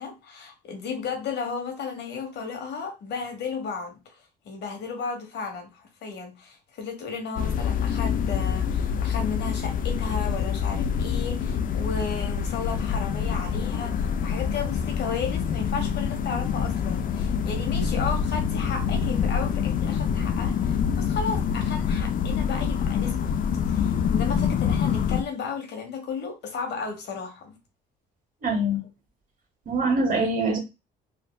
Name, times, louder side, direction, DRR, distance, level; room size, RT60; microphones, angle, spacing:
voice 1, 0.0-4.2 4.4-23.3 23.7-27.5, left 5 dB, 65° left, 1.2 m, -34 dB
sound 1, 7.4-25.2, left 7 dB, 50° left, 0.4 m, -26 dB
voice 2, 28.4-28.8 29.7-30.6, right 1 dB, 45° right, 1.5 m, -24 dB
4.3 x 2.6 x 2.2 m
supercardioid pair, 75°, 19 cm